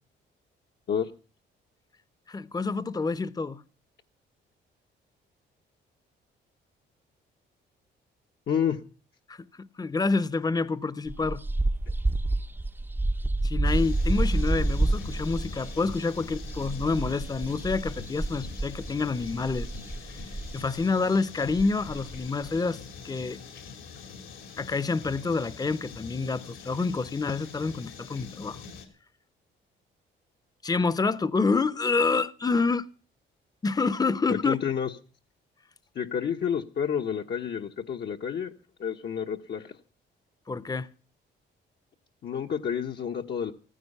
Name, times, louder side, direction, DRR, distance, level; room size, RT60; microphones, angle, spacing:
voice 1, 2.3-3.6 9.3-11.4 13.4-19.7 20.5-22.8 23.0-23.4 24.6-28.6 30.6-32.9 33.6-34.6 40.5-40.9, left 4 dB, 20° left, 0.8 m, -28 dB
voice 2, 8.5-8.8 34.3-34.9 35.9-38.5 38.8-39.8 42.2-43.5, left 8 dB, 55° left, 1.2 m, -29 dB
sound 1, 11.1-20.8 21.2-21.3 21.5-22.5, right 2 dB, 10° right, 0.7 m, -29 dB
sound 2, 13.6-28.9, left 5 dB, 80° left, 3.7 m, -44 dB
15.0 x 14.5 x 5.4 m
cardioid pair, 90°, 20 cm